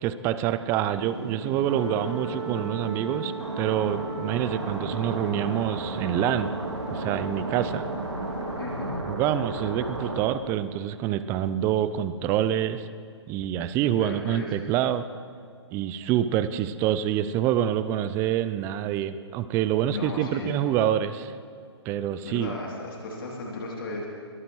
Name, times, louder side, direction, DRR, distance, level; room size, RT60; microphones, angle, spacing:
voice 1, 0.0-6.5 6.9-7.8 9.1-12.9 13.3-15.0 15.7-21.3 21.9-22.5, right 11 dB, 15° right, 13 dB, 0.4 m, -26 dB
sound 1, 0.9-8.9, right 2 dB, 65° right, 2.4 m, -37 dB
sound 2, 1.7-10.2, right 2 dB, 90° right, 2.2 m, -34 dB
voice 2, 8.6-9.0 13.9-14.5 19.9-20.5 22.2-24.1, left 2 dB, 50° left, -2 dB, 2.9 m, -35 dB
22.0 x 14.5 x 3.1 m, 2.3 s
figure-of-eight pair, 130°, 15 cm